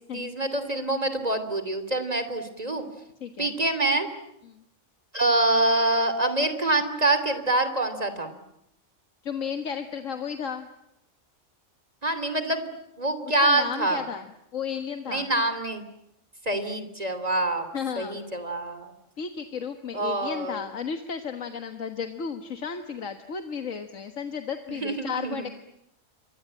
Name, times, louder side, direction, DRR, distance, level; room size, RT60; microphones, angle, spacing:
voice 1, 0.1-2.8 3.4-4.1 5.1-8.4 12.0-12.7 13.0-14.0 15.1-15.8 16.4-17.6 18.0-18.9 19.9-20.6 24.7-25.5, right 2 dB, 30° right, 10 dB, 3.1 m, -26 dB
voice 2, 3.2-3.5 4.5-4.6 9.2-10.7 13.2-14.3 14.5-15.3 17.7-18.2 19.2-25.5, left 6 dB, 85° left, 7 dB, 1.8 m, -33 dB
28.5 x 23.5 x 8.9 m, 0.80 s
omnidirectional pair, 1.3 m